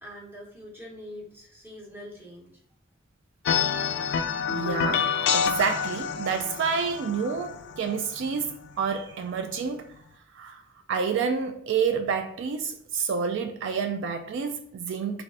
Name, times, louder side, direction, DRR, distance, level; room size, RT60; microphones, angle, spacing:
voice 1, 0.0-2.6, left 1 dB, 10° right, 0.9 m, -44 dB
sound 1, 3.5-8.9, left 7 dB, 60° left, 0.3 m, -28 dB
voice 2, 4.5-9.9 10.3-10.6 10.9-15.2, right 5 dB, 65° right, 0.3 m, -29 dB
3.3 x 2.4 x 3.7 m
head